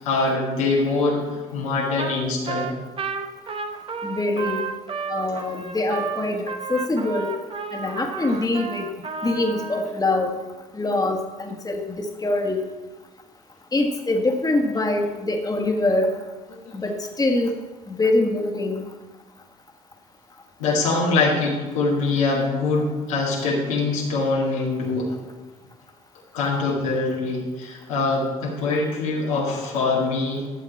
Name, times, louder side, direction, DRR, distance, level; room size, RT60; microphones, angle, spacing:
voice 1, 0.0-2.7 6.3-6.4 16.5-16.7 20.6-25.2 26.3-30.5, left 3 dB, 85° left, -3 dB, 2.2 m, -23 dB
Trumpet, 2.0-2.2 2.5-9.8, right 5 dB, 30° right, 1.0 m, -32 dB
voice 2, 4.0-4.7 5.1-7.4 7.7-10.4 10.7-12.6 13.7-16.2 16.7-17.6 17.9-18.8, left 2 dB, 20° left, 2 dB, 1.6 m, -24 dB
13.0 x 7.0 x 4.2 m, 1.2 s
hypercardioid pair, 60°, 17 cm